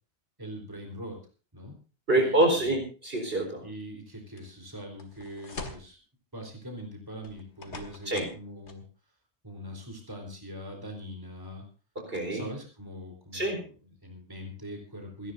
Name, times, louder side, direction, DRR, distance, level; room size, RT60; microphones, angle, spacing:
voice 1, 0.4-1.2 1.5-1.8 2.1-2.8 3.6-6.0 6.3-8.8 9.4-11.6 12.3-15.3, equal, 20° right, 1 dB, 3.8 m, -42 dB
voice 2, 2.1-3.6 8.1-8.3 12.0-12.5 13.3-13.6, right 1 dB, 60° right, 3 dB, 4.4 m, -26 dB
sound 1, 4.4-4.5 5.0-5.9 7.2-8.4 8.7-8.8, left 3 dB, 85° left, 2.3 m, -42 dB
28.0 x 11.0 x 2.6 m, 0.36 s
omnidirectional pair, 1.1 m